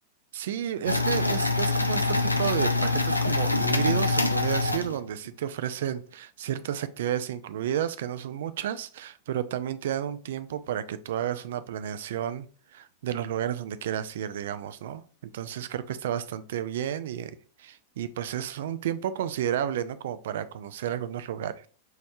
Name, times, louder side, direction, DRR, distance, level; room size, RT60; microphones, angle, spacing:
voice 1, 0.3-12.5 12.7-21.7, right 10 dB, 55° right, 0.4 m, -32 dB
sound 1, 0.8-5.3, left 2 dB, 85° left, 0.4 m, -25 dB
5.7 x 3.1 x 2.7 m
figure-of-eight pair, 90°, 0 cm